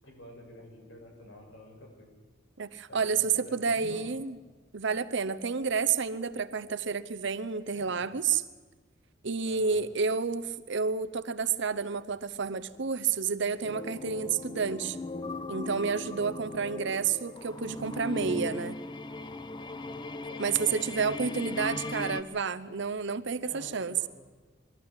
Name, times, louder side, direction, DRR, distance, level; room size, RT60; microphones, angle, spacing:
voice 1, 0.0-2.1 2.9-4.1 7.7-8.1 9.4-9.8 20.3-21.4 23.4-24.1, left 1 dB, 70° left, 2 dB, 6.1 m, -48 dB
voice 2, 2.6-4.4 4.7-8.4 9.2-15.0 15.5-18.8 20.4-24.1, right 5 dB, 65° right, 12 dB, 0.9 m, -30 dB
sound 1, 13.6-22.2, left 2 dB, 25° left, 0.8 m, -38 dB
22.5 x 13.5 x 9.9 m, 1.3 s
head